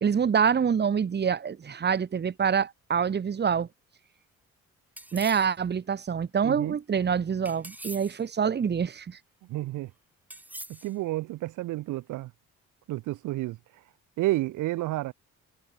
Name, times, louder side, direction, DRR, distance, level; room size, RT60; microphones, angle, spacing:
voice 1, 0.0-3.7 5.1-9.2, right 7 dB, 35° right, 1.1 m, -26 dB
sound 1, 5.0-5.5 7.5-8.2 10.3-11.0, right 1 dB, 5° right, 1.3 m, -43 dB
voice 2, 6.4-6.8 9.5-9.9 10.8-12.3 12.9-13.6 14.2-15.1, right 17 dB, 80° right, 0.7 m, -30 dB
cardioid pair, 90°, 30 cm